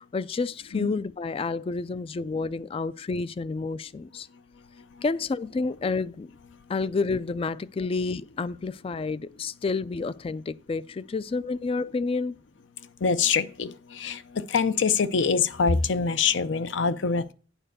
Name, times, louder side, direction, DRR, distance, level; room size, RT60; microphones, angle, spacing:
voice 1, 0.0-4.3 5.0-6.3 6.7-12.3, left 4 dB, 30° left, 0.3 m, -29 dB
voice 2, 13.0-14.2 14.5-17.3, left 5 dB, 75° left, 0.6 m, -24 dB
9.0 x 4.4 x 6.6 m
head